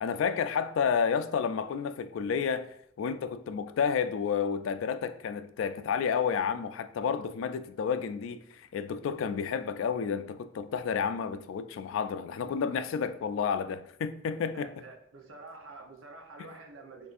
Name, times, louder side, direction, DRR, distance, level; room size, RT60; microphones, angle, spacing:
voice 1, 0.0-2.7 3.0-14.7, left 6 dB, 85° left, 0.3 m, -30 dB
voice 2, 14.5-17.1, right 3 dB, 90° right, 0.8 m, -48 dB
6.6 x 2.6 x 2.5 m
head